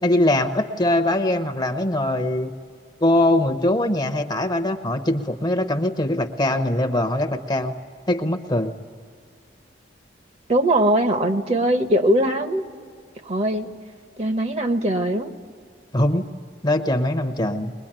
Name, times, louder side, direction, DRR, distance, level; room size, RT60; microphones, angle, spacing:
voice 1, 0.0-2.5 3.0-7.7 8.1-8.7 15.9-16.2 16.6-17.7, left 1 dB, 25° left, 8 dB, 0.9 m, -22 dB
voice 2, 10.5-12.6 13.2-13.7 14.2-15.3, right 1 dB, 35° right, 7 dB, 1.1 m, -21 dB
22.0 x 21.0 x 9.0 m, 2.1 s
head